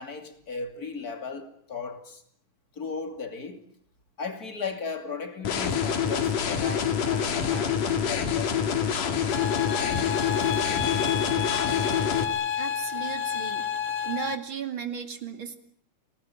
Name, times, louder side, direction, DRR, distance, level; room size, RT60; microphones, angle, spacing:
voice 1, 0.0-2.2 2.8-3.6 4.2-10.3 11.0-11.2, left 4 dB, 30° left, 2.8 m, -37 dB
sound 1, 5.4-12.2, left 7 dB, 90° left, 3.8 m, -26 dB
sound 2, 9.3-14.4, left 9 dB, 55° left, 1.8 m, -30 dB
voice 2, 12.6-13.7 14.0-15.6, right 7 dB, 40° right, 2.8 m, -35 dB
27.0 x 18.5 x 9.0 m
omnidirectional pair, 3.5 m